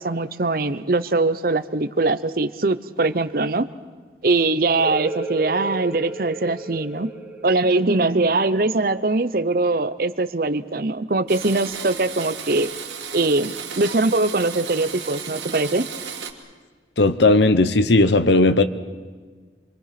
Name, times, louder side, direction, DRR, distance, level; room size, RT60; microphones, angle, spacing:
voice 1, 0.0-3.7 4.2-7.1 7.4-12.8 13.1-15.9, right 2 dB, 55° right, 14 dB, 0.8 m, -22 dB
sound 1, 4.8-10.2, right 2 dB, 5° right, 3.4 m, -34 dB
Domestic sounds home sounds, 11.3-16.3, right 6 dB, 80° right, 2.5 m, -34 dB
voice 2, 17.0-18.6, left 2 dB, 80° left, 12 dB, 1.0 m, -16 dB
27.5 x 23.0 x 5.9 m, 1.5 s
head